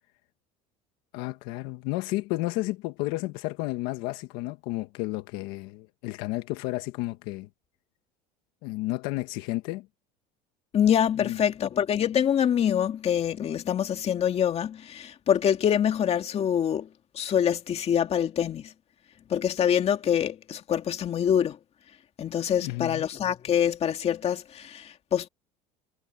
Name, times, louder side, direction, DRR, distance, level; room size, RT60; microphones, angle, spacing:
voice 1, 1.1-7.5 8.6-9.9 11.2-11.4 22.6-23.0, left 19 dB, 80° left, 1.6 m, -32 dB
voice 2, 10.7-16.9 17.1-18.7 19.3-21.6 22.2-25.3, left 9 dB, 40° left, 2.3 m, -25 dB
cardioid pair, 115°, 16 cm